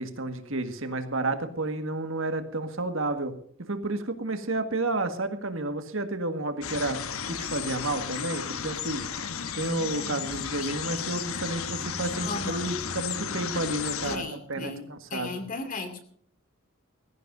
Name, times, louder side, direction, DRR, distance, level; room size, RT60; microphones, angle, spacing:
voice 1, 0.0-3.3 3.7-9.2 9.5-15.4, right 2 dB, 60° right, 1.7 m, -31 dB
sound 1, 6.6-14.2, left 7 dB, 70° left, 1.1 m, -34 dB
voice 2, 12.2-12.7 14.0-16.0, left 3 dB, 35° left, 2.5 m, -36 dB
20.5 x 15.5 x 2.7 m
head